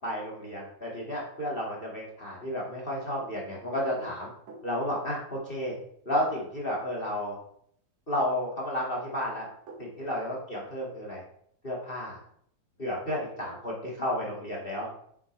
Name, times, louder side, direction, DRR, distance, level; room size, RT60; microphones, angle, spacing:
voice 1, 0.0-4.3 4.6-5.7 6.1-7.4 8.1-9.5 9.8-11.2 11.6-12.2 12.8-14.9, left 1 dB, 20° left, -3 dB, 1.9 m, -32 dB
sound 1, 3.8-4.7 6.2-7.0 9.1-9.9, right 3 dB, 65° right, 2.8 m, -48 dB
9.5 x 7.3 x 3.3 m, 0.67 s
omnidirectional pair, 3.4 m